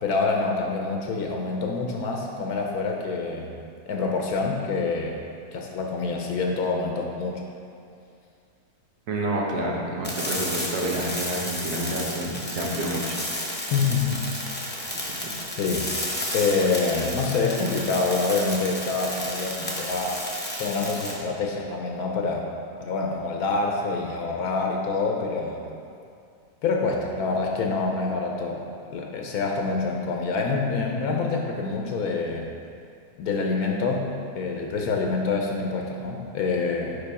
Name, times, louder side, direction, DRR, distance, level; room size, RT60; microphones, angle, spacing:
voice 1, 0.0-3.5 3.9-5.2 5.5-7.4 13.7-14.2 14.6-14.7 15.6-15.9 16.3-20.2 20.5-22.5 22.8-25.7 26.6-28.6 28.9-32.5 33.2-37.0, left 4 dB, 75° left, 1 dB, 1.1 m, -26 dB
voice 2, 9.1-13.2, right 1 dB, 90° right, -2 dB, 1.4 m, -28 dB
sound 1, 10.0-21.1, left 1 dB, 15° left, 0.3 m, -32 dB
5.1 x 4.7 x 4.7 m, 2.4 s
omnidirectional pair, 1.6 m